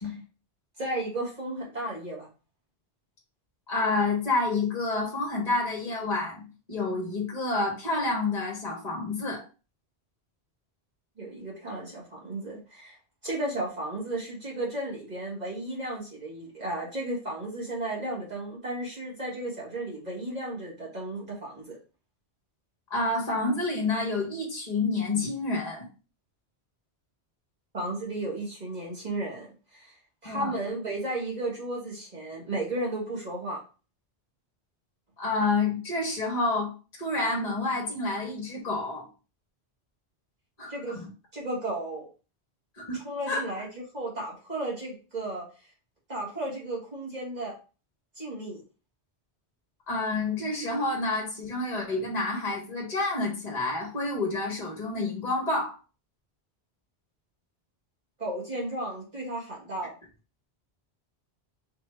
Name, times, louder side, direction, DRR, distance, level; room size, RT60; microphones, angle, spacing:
voice 1, 0.8-2.3 11.2-13.0 13.2-21.8 27.7-30.0 30.2-33.6 40.7-41.0 41.3-42.0 42.9-43.7 43.9-45.5 46.1-47.5 48.2-48.6 58.2-60.0, right 2 dB, 40° right, -5 dB, 1.9 m, -34 dB
voice 2, 3.7-9.4 22.9-25.9 30.2-30.5 35.2-36.7 37.0-39.1 40.6-41.0 42.8-43.0 43.3-43.4 49.9-55.8, left 3 dB, 40° left, -1 dB, 1.4 m, -29 dB
4.4 x 2.9 x 3.3 m, 0.34 s
omnidirectional pair, 1.1 m